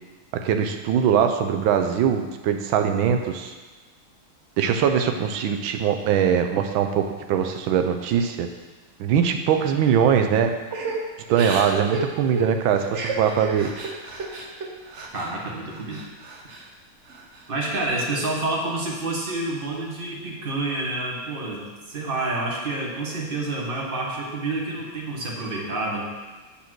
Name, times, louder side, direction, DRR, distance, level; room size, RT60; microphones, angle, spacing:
voice 1, 0.3-3.5 4.6-8.5 9.0-10.5 11.3-13.7, right 8 dB, 75° right, 6 dB, 1.4 m, -22 dB
Crying sobbing / Breathing, 10.7-15.3 15.7-16.7 17.1-17.8, right 3 dB, 55° right, 0.7 m, -32 dB
voice 2, 15.1-16.0 17.5-26.1, right 2 dB, 35° right, -1 dB, 1.1 m, -28 dB
8.4 x 4.3 x 6.0 m, 1.2 s
omnidirectional pair, 2.3 m